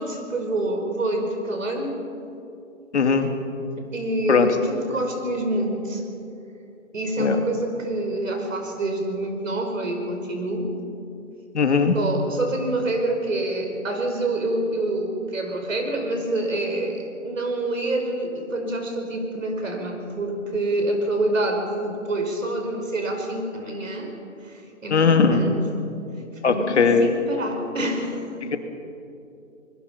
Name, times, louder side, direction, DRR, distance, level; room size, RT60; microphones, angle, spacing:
voice 1, 0.0-2.0 3.8-6.0 6.9-10.7 11.9-24.1 24.4-25.7 26.5-28.2, right 2 dB, 75° right, 4 dB, 5.2 m, -27 dB
voice 2, 2.9-3.3 4.3-4.5 7.2-7.4 11.5-12.0 24.9-25.4 26.4-27.1 28.4-28.6, left 5 dB, 60° left, 6 dB, 2.2 m, -19 dB
25.0 x 21.5 x 5.6 m, 2.7 s
hypercardioid pair, 160°, 39 cm